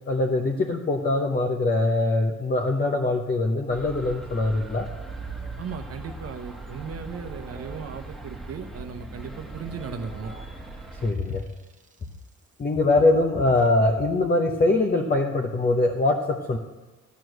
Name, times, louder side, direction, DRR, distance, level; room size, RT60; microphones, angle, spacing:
voice 1, 0.1-4.9 11.0-11.4 12.6-16.6, left 2 dB, 30° left, 2 dB, 0.9 m, -23 dB
sound 1, 3.7-11.1, right 1 dB, ahead, 1.6 m, -40 dB
sound 2, 4.7-6.1 6.6-12.1 13.6-14.0, right 6 dB, 25° right, 1.0 m, -45 dB
voice 2, 5.6-10.3, right 6 dB, 55° right, 8 dB, 0.9 m, -37 dB
12.5 x 4.6 x 7.9 m, 1.2 s
cardioid pair, 90°, 30 cm